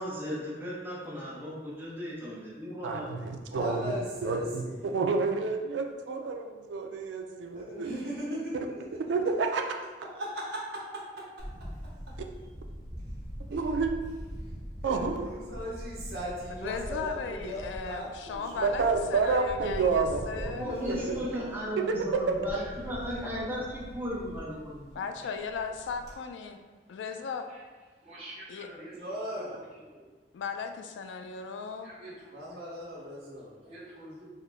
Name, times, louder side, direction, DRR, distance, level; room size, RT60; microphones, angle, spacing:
voice 1, 0.0-3.1 20.4-25.0, equal, 10° right, -6 dB, 0.7 m, -36 dB
voice 2, 2.8-3.9 4.2-7.9 9.1-9.6 13.5-13.9 14.8-15.3 18.5-21.2 21.8-22.4, right 4 dB, 85° right, 4 dB, 0.3 m, -29 dB
voice 3, 3.5-5.0 7.5-8.8 10.1-10.8 11.2-11.3 13.5-13.6 14.8-18.8 20.5-21.3 29.0-29.6 32.3-33.5, equal, 60° right, -5 dB, 1.0 m, -38 dB
Camera, 11.4-26.1, equal, 20° left, 1.0 m, -43 dB
voice 4, 16.5-18.8 19.1-20.7 25.0-26.6 26.9-27.4 28.5-28.7 30.3-31.9, left 5 dB, 90° left, 7 dB, 0.3 m, -37 dB
voice 5, 22.5-23.3 27.5-27.6 28.0-30.1 31.8-32.6 33.4-34.3, right 1 dB, 35° right, -12 dB, 1.2 m, -48 dB
3.7 x 2.1 x 3.3 m, 1.3 s
head